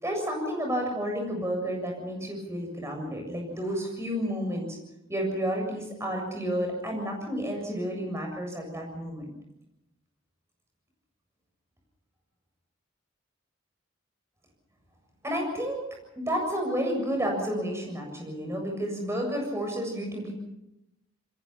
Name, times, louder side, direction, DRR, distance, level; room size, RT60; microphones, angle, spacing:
voice 1, 0.0-4.8 5.1-9.3 15.2-15.8 16.2-20.3, equal, 15° right, 1 dB, 7.3 m, -31 dB
28.5 x 21.5 x 5.9 m, 0.89 s
head